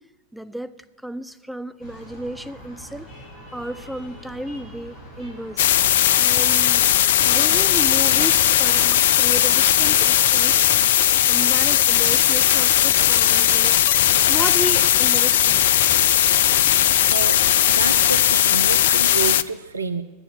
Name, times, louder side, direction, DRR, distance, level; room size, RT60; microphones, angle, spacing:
voice 1, 0.3-0.7 1.0-3.1 3.5-5.6 6.1-6.9 7.2-10.5 11.3-13.8 14.3-16.0, right 1 dB, ahead, 11 dB, 0.6 m, -33 dB
sound 1, 1.8-17.5, left 1 dB, 35° left, 6.3 m, -42 dB
sound 2, 5.6-19.4, left 11 dB, 55° left, 0.4 m, -17 dB
voice 2, 17.1-17.4 17.7-20.0, right 4 dB, 75° right, 10 dB, 0.6 m, -28 dB
10.5 x 9.9 x 8.8 m, 1.2 s
figure-of-eight pair, 90°, 0 cm